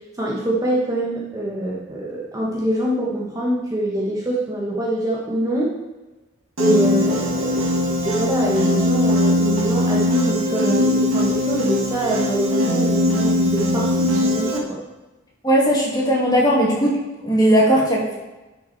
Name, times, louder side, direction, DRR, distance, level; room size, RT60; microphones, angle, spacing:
voice 1, 0.2-5.7 6.6-7.7 8.0-14.8, right 1 dB, 15° right, -4 dB, 1.3 m, -24 dB
Piano, 6.6-14.6, left 1 dB, 80° right, 1.6 m, -20 dB
voice 2, 15.4-16.9 17.2-18.1, equal, 20° left, -4 dB, 2.2 m, -17 dB
10.5 x 6.0 x 4.1 m, 1.1 s
head